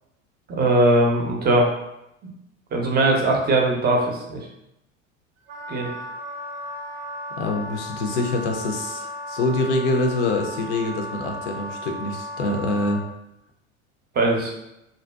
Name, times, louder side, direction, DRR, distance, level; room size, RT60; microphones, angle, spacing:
voice 1, 0.5-1.7 2.7-4.5 5.7-5.9 14.1-14.5, right 2 dB, 25° right, 0 dB, 0.5 m, -20 dB
Wind instrument woodwind instrument, 5.5-13.0, equal, 80° right, 0.5 m, -35 dB
voice 2, 7.4-13.0, left 2 dB, 65° left, 3 dB, 0.6 m, -25 dB
2.6 x 2.1 x 2.2 m, 0.85 s
hypercardioid pair, 75°, 39 cm